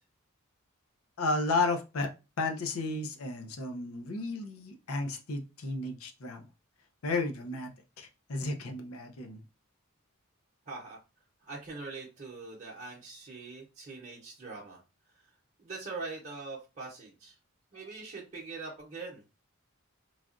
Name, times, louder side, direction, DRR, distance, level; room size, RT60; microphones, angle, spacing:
voice 1, 1.2-2.1 2.4-6.5 7.0-7.7 8.0-9.4, left 3 dB, 85° left, 5 dB, 0.6 m, -33 dB
voice 2, 10.7-11.0 11.4-14.8 15.6-17.3 17.7-19.2, right 3 dB, 35° right, -4 dB, 0.7 m, -42 dB
3.2 x 2.3 x 2.5 m, 0.28 s
head